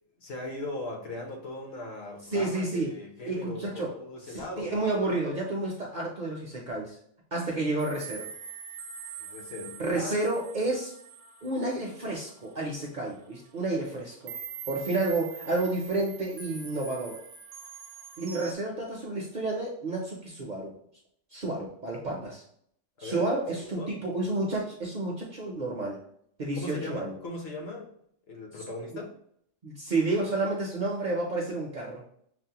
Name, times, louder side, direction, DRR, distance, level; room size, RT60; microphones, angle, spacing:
voice 1, 0.2-4.8 9.2-10.2 23.0-23.9 26.6-27.9 28.3-29.1, left 2 dB, 60° left, 1 dB, 1.0 m, -39 dB
voice 2, 2.3-2.9 3.3-3.9 4.2-7.0 7.3-8.3 9.8-10.9 11.4-14.3 14.7-17.2 18.2-20.7 21.3-22.4 23.0-26.0 26.4-27.2 28.5-28.6 28.9-29.0 29.6-32.0, right 2 dB, 50° right, -2 dB, 0.6 m, -30 dB
sound 1, 7.8-12.9 13.4-13.5 14.3-18.5, right 7 dB, 80° right, 0.9 m, -44 dB
5.9 x 2.0 x 2.8 m, 0.67 s
omnidirectional pair, 1.3 m